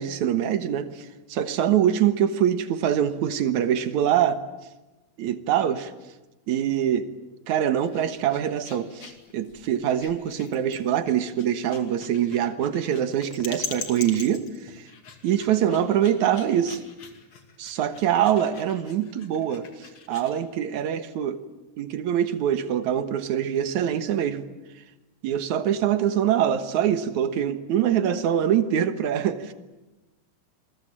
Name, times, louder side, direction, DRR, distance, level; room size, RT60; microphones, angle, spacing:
voice 1, 0.0-4.4 5.2-5.9 6.5-7.1 7.5-14.9 15.2-16.8 17.6-21.4 21.8-24.5 25.2-29.5, right 10 dB, 65° right, 10 dB, 2.6 m, -24 dB
sound 1, 7.7-20.4, left 5 dB, 40° left, 3.0 m, -42 dB
28.0 x 22.5 x 8.8 m, 1.1 s
omnidirectional pair, 3.9 m